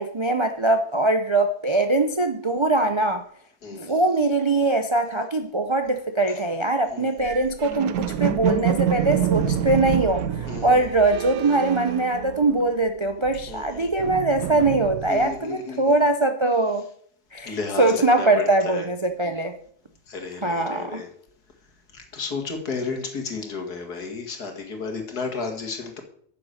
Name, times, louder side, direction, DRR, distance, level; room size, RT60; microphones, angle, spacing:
voice 1, 0.0-3.2 3.7-16.9 17.3-19.5 20.4-21.0, right 2 dB, 45° right, 6 dB, 0.3 m, -22 dB
voice 2, 3.6-4.0 6.9-7.3 10.5-10.9 13.5-13.9 15.1-15.9 17.4-18.9 20.1-21.1 21.9-26.0, left 4 dB, 85° left, 3 dB, 2.4 m, -33 dB
sound 1, 7.2-12.8 13.1-15.4, right 10 dB, 75° right, 1.1 m, -27 dB
9.8 x 7.0 x 6.5 m, 0.63 s
omnidirectional pair, 1.6 m